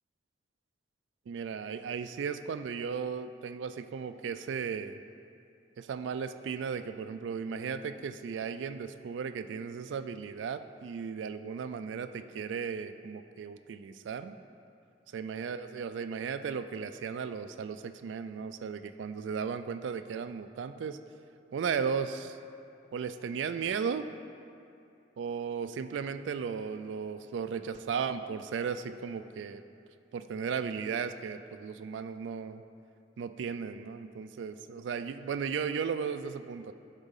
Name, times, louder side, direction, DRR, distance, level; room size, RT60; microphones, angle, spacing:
voice 1, 1.3-5.0 5.8-14.3 15.1-21.0 21.5-22.4 22.9-24.1 25.2-29.6 30.1-32.6 33.2-36.7, right 6 dB, 85° right, 10 dB, 0.3 m, -35 dB
11.5 x 4.1 x 5.5 m, 2.6 s
head